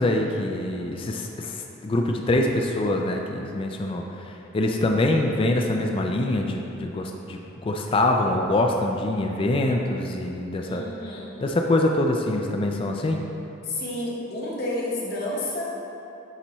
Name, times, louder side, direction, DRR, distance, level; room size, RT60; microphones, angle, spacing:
voice 1, 0.0-10.8 11.4-13.2, left 1 dB, 25° left, 2 dB, 0.3 m, -24 dB
voice 2, 10.6-11.3 13.6-15.7, left 1 dB, 50° left, -5 dB, 1.2 m, -30 dB
8.9 x 4.1 x 3.0 m, 3.0 s
head